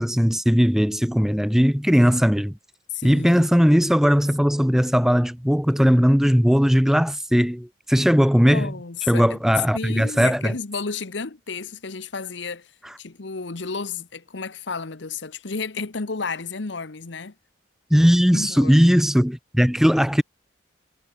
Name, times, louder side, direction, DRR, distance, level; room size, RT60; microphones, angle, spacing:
voice 1, 0.0-2.6 3.0-8.7 9.1-10.5 17.9-20.2, equal, ahead, 0.9 m, -18 dB
voice 2, 2.9-3.5 8.5-9.4 9.7-12.7 13.0-17.3 18.3-19.0, left 4 dB, 70° left, 1.0 m, -32 dB
head